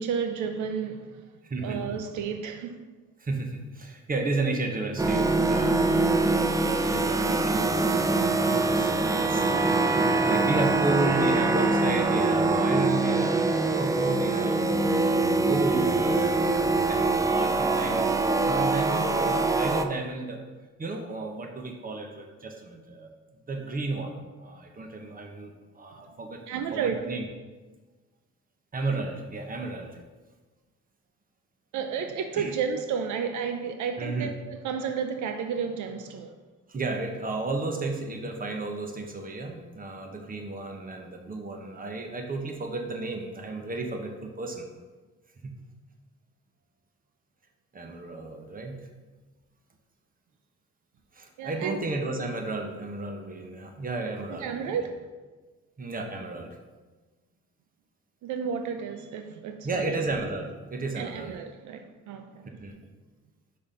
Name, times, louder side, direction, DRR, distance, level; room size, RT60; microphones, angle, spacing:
voice 1, 0.0-1.2 1.6-2.8 26.5-27.0 31.7-36.4 51.4-51.8 54.4-55.0 58.2-60.0 61.0-62.7, right 6 dB, 75° right, 0.5 m, -32 dB
voice 2, 1.4-2.1 3.2-14.9 15.4-20.4 20.8-23.1 23.5-26.4 26.7-27.3 28.7-30.0 32.3-32.5 34.0-34.3 36.7-44.7 45.4-45.5 47.7-48.8 51.1-54.9 55.8-56.6 59.6-61.3 62.5-62.7, right 3 dB, 30° right, 1.0 m, -33 dB
sound 1, 5.0-19.8, right 3 dB, 10° right, 0.4 m, -24 dB
5.4 x 4.3 x 5.2 m
cardioid pair, 90°, 30 cm